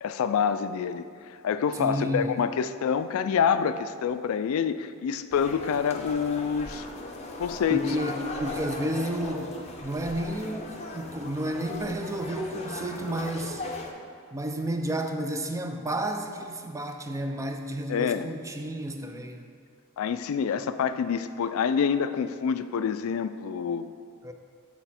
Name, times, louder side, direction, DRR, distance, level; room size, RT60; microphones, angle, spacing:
voice 1, 0.0-6.9 7.4-7.8 17.9-18.3 20.0-23.9, left 7 dB, 75° left, 12 dB, 0.3 m, -27 dB
voice 2, 1.7-2.4 7.7-13.6 14.3-19.5 24.2-24.3, right 1 dB, 15° right, 5 dB, 0.4 m, -31 dB
sound 1, 5.3-13.9, left 2 dB, 30° left, 0.6 m, -38 dB
8.0 x 4.1 x 4.3 m, 2.2 s
head